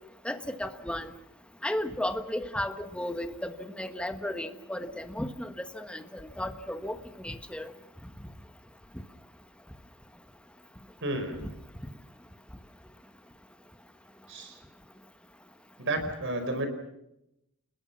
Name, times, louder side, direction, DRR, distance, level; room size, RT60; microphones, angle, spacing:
voice 1, 0.2-1.1 1.6-7.0 7.2-7.7, left 1 dB, 5° left, 7 dB, 1.4 m, -34 dB
voice 2, 11.0-11.5 14.3-14.6 15.8-16.7, right 2 dB, 60° right, 8 dB, 5.0 m, -31 dB
30.0 x 20.5 x 6.0 m, 0.83 s
head